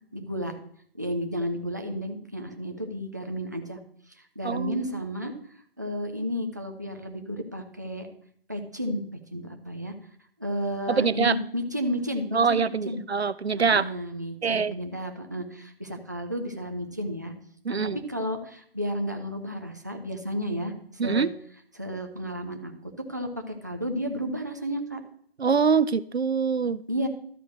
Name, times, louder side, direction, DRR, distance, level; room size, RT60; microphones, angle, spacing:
voice 1, 0.1-0.5 0.9-3.8 4.1-5.3 5.8-8.1 8.5-9.9 10.4-13.0 13.6-17.3 17.7-17.8 18.1-21.3 21.7-22.7 23.1-25.0 26.9-27.1, equal, 20° right, 4 dB, 0.6 m, -32 dB
voice 2, 4.4-4.8 10.9-11.3 12.3-13.9 14.4-14.8 17.7-18.0 21.0-21.3 25.4-26.8, right 5 dB, 85° right, 17 dB, 0.5 m, -24 dB
12.5 x 4.5 x 6.3 m, 0.63 s
figure-of-eight pair, 155°, 31 cm